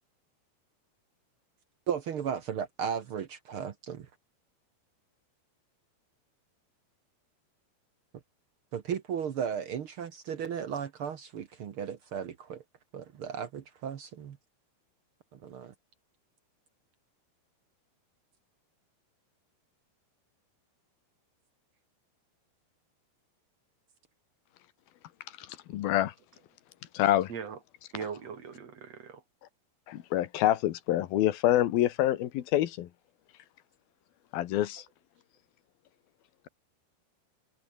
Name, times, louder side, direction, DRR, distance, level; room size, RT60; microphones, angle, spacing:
voice 1, 1.9-4.1 8.7-12.6 12.9-14.4 15.3-15.7, right 8 dB, 85° right, 1.1 m, -35 dB
voice 2, 25.4-26.1 26.9-27.3 29.9-32.9 34.3-34.8, left 13 dB, 75° left, 3.0 m, -27 dB
voice 3, 27.3-27.6 27.9-29.2, right 7 dB, 45° right, 3.7 m, -40 dB
omnidirectional pair, 4.6 m